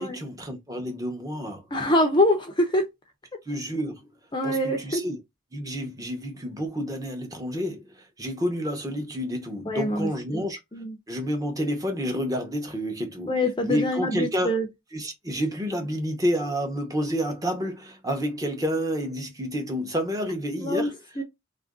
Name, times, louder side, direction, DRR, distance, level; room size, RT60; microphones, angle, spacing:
voice 1, 0.0-1.6 3.5-4.0 4.4-5.2 5.5-10.6 11.1-13.3 13.6-14.6 14.9-21.2, equal, 15° right, 0.8 m, -29 dB
voice 2, 1.7-2.9 4.3-5.0 9.7-10.5 10.7-11.0 13.3-14.7 20.6-20.9 21.2-21.3, left 1 dB, 20° left, 0.5 m, -24 dB
3.0 x 2.5 x 3.5 m
head